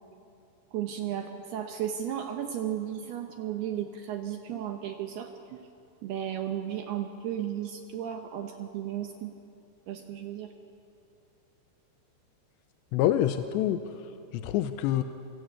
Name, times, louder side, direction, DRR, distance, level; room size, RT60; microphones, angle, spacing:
voice 1, 0.7-5.6 6.0-9.3 9.9-10.5, right 10 dB, 70° right, 4 dB, 2.9 m, -34 dB
voice 2, 12.9-15.0, left 12 dB, 80° left, 9 dB, 3.0 m, -27 dB
27.5 x 25.5 x 8.5 m, 2.7 s
omnidirectional pair, 5.2 m